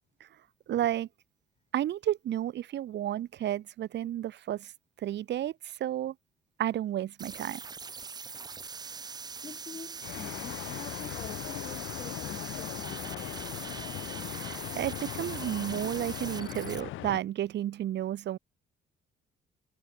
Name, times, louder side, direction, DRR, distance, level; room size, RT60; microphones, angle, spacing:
voice 1, 0.7-1.1 1.7-4.7 5.0-6.1 6.6-7.6 14.3-18.4, right 12 dB, 60° right, 0.7 m, -32 dB
sound 1, 7.2-16.8, right 5 dB, 20° right, 0.4 m, -42 dB
voice 2, 9.4-13.8, left 5 dB, 30° left, 1.2 m, -47 dB
sound 2, 10.0-17.2, left 15 dB, 80° left, 0.8 m, -39 dB
cardioid pair, 90°, 20 cm